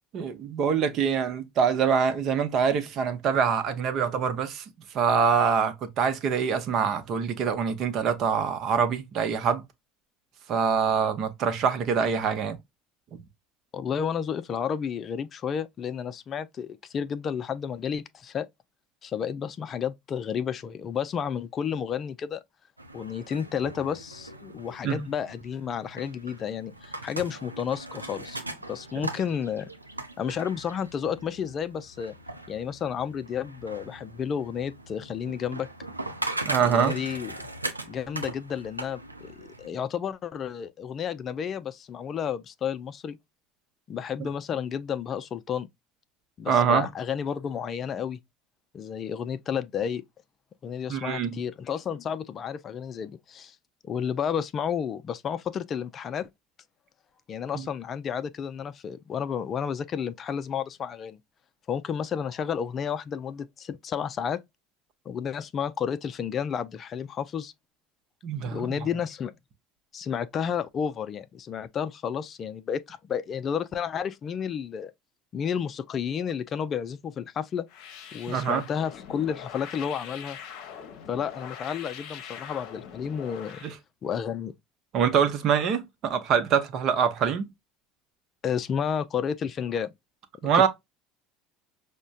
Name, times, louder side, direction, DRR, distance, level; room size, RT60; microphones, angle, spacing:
voice 1, 0.1-4.6 4.9-9.6 10.5-12.6 13.1-13.2 24.8-25.0 36.4-37.0 44.2-44.3 46.5-46.9 50.9-51.4 68.2-68.8 78.3-78.6 83.6-83.7 84.9-87.5 90.4-90.7, right 7 dB, 45° right, 0.8 m, -24 dB
voice 2, 13.7-18.5 19.0-22.4 22.9-28.4 28.7-29.7 30.2-32.1 32.5-35.7 36.6-37.3 37.9-43.2 43.9-45.7 46.4-48.2 48.7-50.0 50.6-53.6 53.8-56.3 57.3-61.2 61.7-64.4 65.1-67.5 68.4-69.3 69.9-74.9 75.3-77.7 78.1-80.4 81.1-83.6 84.0-84.5 88.4-89.9 90.5-90.7, left 7 dB, 40° left, 0.4 m, -31 dB
sound 1, 22.8-39.7, right 2 dB, 90° right, 0.5 m, -39 dB
sound 2, 77.7-83.7, left 8 dB, 55° left, 0.8 m, -43 dB
6.1 x 2.2 x 2.4 m
figure-of-eight pair, 65°, 0 cm